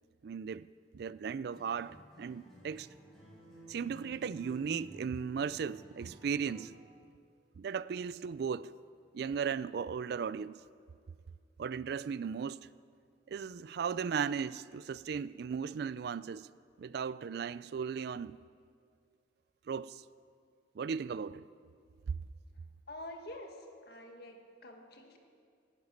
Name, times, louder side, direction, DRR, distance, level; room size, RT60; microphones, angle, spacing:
voice 1, 0.2-0.7 0.9-2.9 3.7-6.7 7.6-8.7 9.1-10.6 11.6-12.7 13.3-16.5 16.8-18.4 19.7-20.0 20.8-21.5, right 6 dB, 60° right, 0.3 m, -36 dB
Acoustic guitar, 1.5-6.9, right 1 dB, ahead, 4.6 m, -54 dB
voice 2, 22.9-25.2, left 1 dB, 60° left, 1.8 m, -47 dB
11.5 x 11.0 x 9.5 m
head